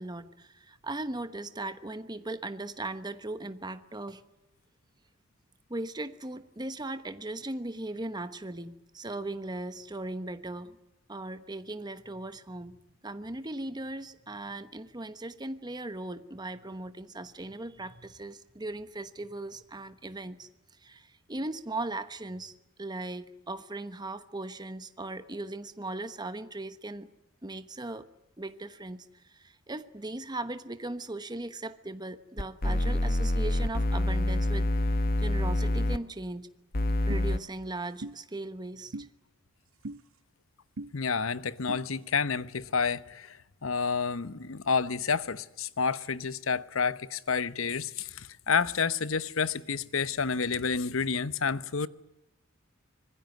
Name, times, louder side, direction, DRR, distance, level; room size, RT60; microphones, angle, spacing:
voice 1, 0.0-4.2 5.7-10.8 11.1-12.8 13.0-20.5 20.8-27.1 27.4-28.1 28.4-34.9 35.2-36.5 37.1-39.1, right 2 dB, 20° right, 1.1 m, -38 dB
sound 1, 32.4-36.0 36.7-37.4, left 1 dB, 45° left, 1.1 m, -26 dB
sound 2, 37.1-37.2 38.0-38.2 38.9-39.1 39.8-40.0 40.8-40.9 41.7-41.8, right 2 dB, 80° right, 1.0 m, -38 dB
voice 2, 40.9-51.9, left 5 dB, 75° left, 1.0 m, -29 dB
25.5 x 21.0 x 9.4 m
head